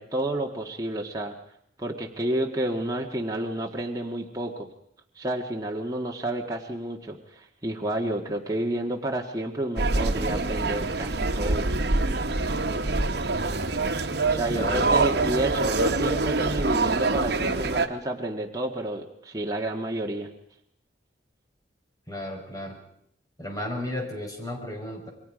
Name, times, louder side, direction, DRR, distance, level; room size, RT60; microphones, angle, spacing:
voice 1, 0.0-1.3 1.8-4.7 5.1-11.7 14.3-20.3, right 1 dB, 20° right, 0 dB, 1.7 m, -30 dB
sound 1, 9.8-17.9, right 3 dB, 65° right, 1.4 m, -25 dB
voice 2, 13.2-13.7 14.5-15.0 22.1-22.8 23.4-25.1, left 1 dB, 20° left, 1 dB, 5.5 m, -34 dB
28.5 x 22.5 x 5.1 m, 0.70 s
head